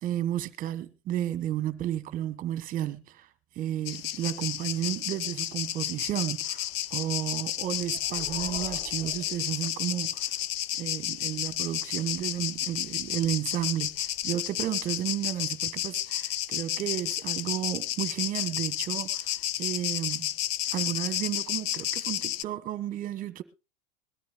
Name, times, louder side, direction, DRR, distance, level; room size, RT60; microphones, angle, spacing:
voice 1, 0.0-3.3 3.5-10.3 10.8-20.3 20.7-23.4, right 12 dB, 25° right, 1.3 m, -32 dB
sound 1, 3.9-22.4, left 12 dB, 75° left, 0.6 m, -32 dB
sound 2, 7.5-10.2, left 2 dB, 30° left, 2.6 m, -46 dB
21.5 x 13.5 x 2.3 m
supercardioid pair, 160°, 30 cm